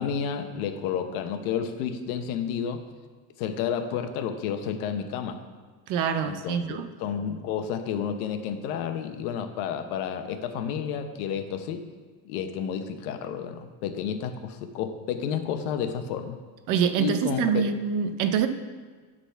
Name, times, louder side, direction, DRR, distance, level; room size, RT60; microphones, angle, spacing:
voice 1, 0.0-2.9 3.4-5.4 6.2-11.8 12.2-16.4 17.0-17.8, left 7 dB, 80° left, 8 dB, 1.0 m, -31 dB
voice 2, 5.9-6.9 16.7-18.5, right 7 dB, 45° right, 8 dB, 0.6 m, -25 dB
11.5 x 4.1 x 5.7 m, 1.5 s
cardioid pair, 175°, 44 cm